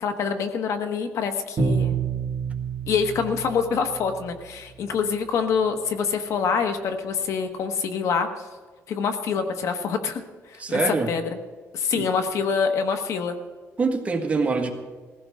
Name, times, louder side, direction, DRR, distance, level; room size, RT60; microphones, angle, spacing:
voice 1, 0.0-2.0 2.9-8.5 8.9-11.4 11.7-13.4, left 6 dB, 65° left, 7 dB, 1.3 m, -26 dB
Bowed string instrument, 1.6-4.4, right 5 dB, 45° right, 1.8 m, -28 dB
voice 2, 10.6-11.1 12.0-12.1 13.8-14.7, right 4 dB, 25° right, 3 dB, 1.7 m, -24 dB
20.0 x 15.5 x 3.7 m, 1.4 s
cardioid pair, 135°, 5 cm